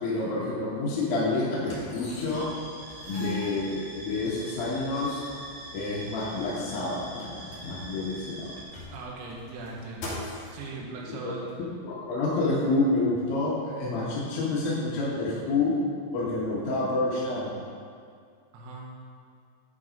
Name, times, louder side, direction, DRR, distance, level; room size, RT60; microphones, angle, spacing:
voice 1, 0.0-2.5 3.1-5.2 5.7-8.5 11.1-11.3 11.8-15.8 16.1-17.5, left 2 dB, 70° left, -6 dB, 2.2 m, -28 dB
sound 1, 0.7-0.9 1.6-2.6 2.9-4.2 5.0-5.1 5.4-5.5 5.9-8.0 8.5-10.7 11.5-11.6, left 1 dB, 50° left, 2.2 m, -43 dB
sound 2, 2.3-8.6, right 1 dB, 70° right, 3.6 m, -43 dB
voice 2, 8.9-10.2 10.5-11.5 18.5-18.9, right 3 dB, 90° right, -1 dB, 3.8 m, -39 dB
11.5 x 4.1 x 5.2 m, 2.2 s
omnidirectional pair, 5.8 m